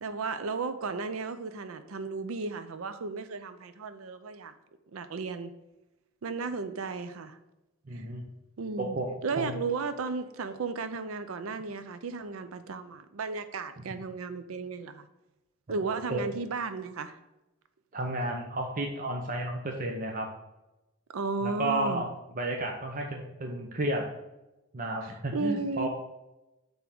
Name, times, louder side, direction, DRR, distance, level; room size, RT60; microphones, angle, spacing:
voice 1, 0.0-4.5 4.9-5.5 6.2-7.4 7.9-8.1 8.6-9.0 9.2-15.0 15.7-17.2 21.1-22.0 25.0-25.9, right 4 dB, 80° right, 10 dB, 0.5 m, -34 dB
voice 2, 7.9-8.2 8.8-9.1 9.4-9.5 13.8-13.9 15.7-16.2 17.9-20.3 21.4-22.1 22.4-24.0 24.7-25.9, right 1 dB, 40° right, 1 dB, 0.8 m, -32 dB
7.8 x 3.6 x 5.9 m, 0.99 s
head